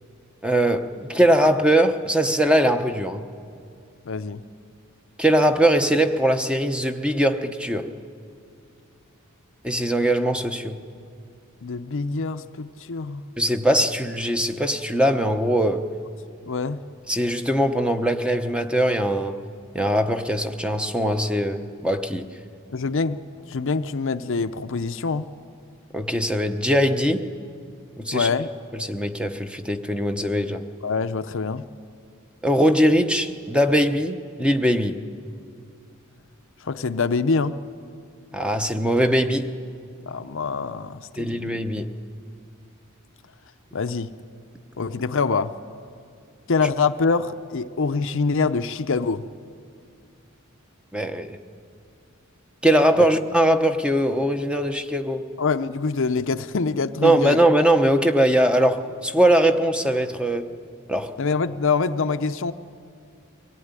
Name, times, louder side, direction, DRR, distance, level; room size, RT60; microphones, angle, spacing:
voice 1, 0.4-3.2 5.2-7.9 9.6-10.8 13.4-15.9 17.1-19.4 19.7-22.3 25.9-27.2 28.0-28.3 28.8-30.6 32.4-35.0 38.3-39.5 41.2-41.9 50.9-51.4 52.6-55.2 57.0-60.5 60.9-61.1, right 1 dB, 5° right, 7 dB, 0.9 m, -21 dB
voice 2, 4.1-4.4 11.6-13.2 16.5-16.8 22.7-25.3 28.1-28.5 30.8-31.7 36.6-37.5 40.1-41.5 43.7-44.1 44.8-45.5 46.5-49.3 53.0-53.1 55.4-57.4 61.2-62.5, left 4 dB, 65° left, 10 dB, 0.7 m, -25 dB
23.5 x 18.0 x 9.7 m, 2.4 s
head